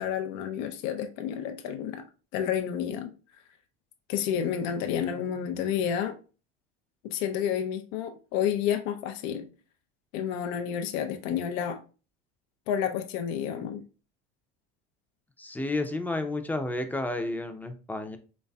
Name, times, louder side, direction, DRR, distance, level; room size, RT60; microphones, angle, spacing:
voice 1, 0.0-2.0 2.3-3.1 4.1-6.2 7.1-9.5 10.1-11.8 12.7-13.8, left 9 dB, 70° left, 0.6 m, -30 dB
voice 2, 15.4-18.2, left 2 dB, 5° left, 0.5 m, -31 dB
4.1 x 3.1 x 2.3 m
supercardioid pair, 90°, 31 cm